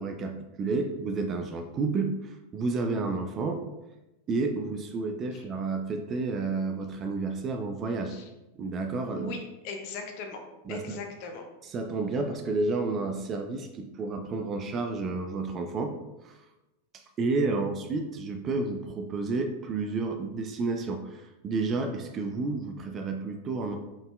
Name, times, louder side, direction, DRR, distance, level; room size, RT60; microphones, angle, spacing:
voice 1, 0.0-3.6 4.3-8.1 8.6-9.4 10.7-11.0 11.6-16.0 16.2-16.4 16.9-23.8, right 3 dB, 25° right, 5 dB, 0.3 m, -31 dB
voice 2, 9.1-10.4 10.7-11.5, left 4 dB, 45° left, 4 dB, 0.6 m, -39 dB
3.9 x 3.5 x 2.3 m, 0.98 s
figure-of-eight pair, 90°, 0 cm